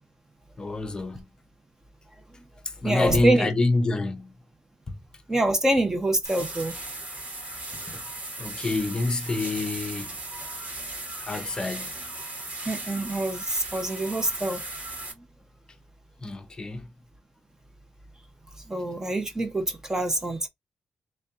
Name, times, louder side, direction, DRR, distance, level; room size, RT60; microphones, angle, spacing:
voice 1, 0.6-1.2 2.8-4.3 4.9-5.0 7.9-8.0 8.4-10.1 11.2-11.9 16.2-16.9, left 2 dB, 25° left, 0.6 m, -27 dB
voice 2, 2.8-3.5 5.3-6.8 11.3-11.5 12.7-14.6 18.7-20.5, right 1 dB, 15° right, 0.6 m, -25 dB
sound 1, 6.2-15.1, right 2 dB, 45° right, 1.8 m, -37 dB
3.3 x 2.6 x 3.5 m
wide cardioid pair, 155°, 3 cm